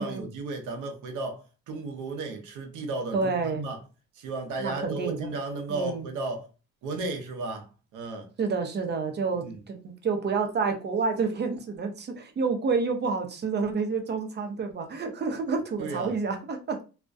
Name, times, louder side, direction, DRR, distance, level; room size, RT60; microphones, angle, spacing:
voice 1, 0.0-1.4 1.7-3.8 4.2-6.5 6.8-7.7 7.9-8.3 9.4-9.5 15.8-16.1, right 3 dB, 85° right, 0.6 m, -34 dB
voice 2, 3.1-3.7 4.6-5.4 5.7-6.0 8.4-16.8, right 4 dB, 35° right, 0.5 m, -29 dB
2.3 x 2.1 x 2.5 m
cardioid pair, 90°, 30 cm